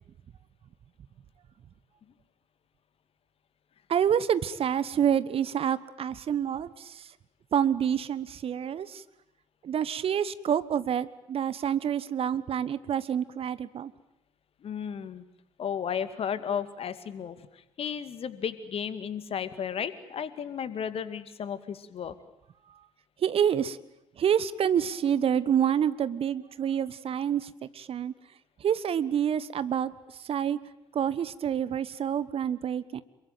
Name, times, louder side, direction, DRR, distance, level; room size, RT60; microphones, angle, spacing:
voice 1, 3.9-7.1 7.5-9.0 9.6-13.9 23.2-23.8 24.2-28.1 28.6-29.9 30.2-30.6 30.9-33.0, right 9 dB, 45° right, 16 dB, 1.2 m, -27 dB
voice 2, 14.6-15.2 15.6-22.1, left 7 dB, 45° left, 12 dB, 2.1 m, -34 dB
28.0 x 23.0 x 9.3 m, 0.84 s
figure-of-eight pair, 50°, 14 cm